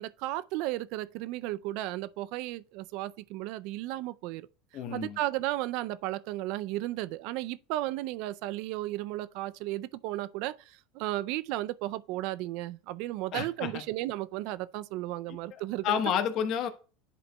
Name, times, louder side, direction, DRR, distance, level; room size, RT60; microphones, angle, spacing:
voice 1, 0.0-4.5 4.9-16.0, right 16 dB, 65° right, 0.4 m, -34 dB
voice 2, 4.7-5.2 13.3-13.8 15.5-16.7, left 9 dB, 50° left, 1.1 m, -30 dB
10.5 x 5.2 x 2.2 m
supercardioid pair, 110°, 0 cm